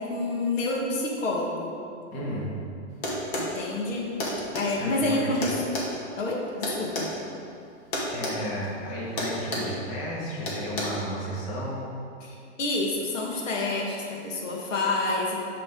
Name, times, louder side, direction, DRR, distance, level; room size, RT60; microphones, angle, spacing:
voice 1, 0.0-1.7 3.4-4.1 4.5-5.6 6.2-7.1 12.2-15.4, left 2 dB, 85° left, -1 dB, 1.7 m, -28 dB
voice 2, 2.1-2.5 4.8-5.5 8.1-11.9, equal, 30° left, -5 dB, 1.9 m, -33 dB
sound 1, 3.0-3.5 4.2-4.7 5.4-7.1 7.9-8.4 8.6-8.8 9.2-9.7 10.5-10.8, left 1 dB, 50° left, 2.1 m, -30 dB
11.0 x 5.1 x 3.7 m, 2.5 s
hypercardioid pair, 165°, 38 cm